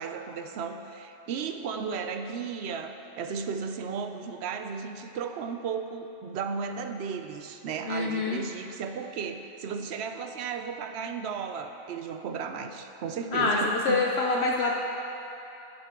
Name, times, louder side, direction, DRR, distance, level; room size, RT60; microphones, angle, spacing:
voice 1, 0.0-14.2, right 6 dB, 65° right, 7 dB, 0.8 m, -35 dB
voice 2, 7.9-8.4 13.3-14.7, left 3 dB, 60° left, -1 dB, 0.9 m, -26 dB
11.5 x 8.8 x 3.7 m, 2.9 s
omnidirectional pair, 1.3 m